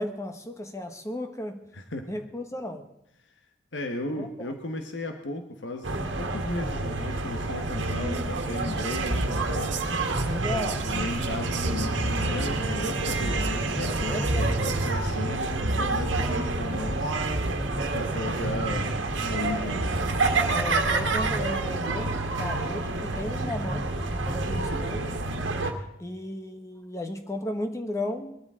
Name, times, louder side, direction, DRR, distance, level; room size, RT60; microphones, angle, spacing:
voice 1, 0.0-1.6 2.1-2.9 4.2-4.3 10.3-10.9 14.1-14.8 20.5-24.0 24.3-25.2 26.0-28.4, left 1 dB, 15° left, 6 dB, 1.1 m, -34 dB
voice 2, 1.7-2.1 3.7-9.8 10.5-17.2 17.7-19.9, left 2 dB, 75° left, 5 dB, 1.3 m, -35 dB
sound 1, 5.8-25.7, right 2 dB, 85° right, 1.6 m, -28 dB
Whispering, 7.6-15.2, right 9 dB, 65° right, 1.7 m, -42 dB
21.5 x 13.0 x 3.7 m, 0.80 s
head